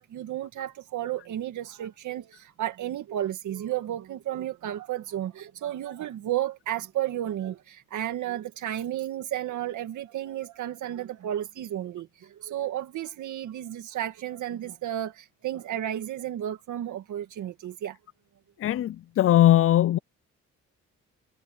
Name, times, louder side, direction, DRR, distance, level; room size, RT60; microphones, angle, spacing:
voice 1, 0.0-18.0, right 12 dB, 75° right, 2.2 m, -33 dB
voice 2, 18.6-20.0, left 12 dB, 45° left, 0.5 m, -20 dB
cardioid pair, 90°, 30 cm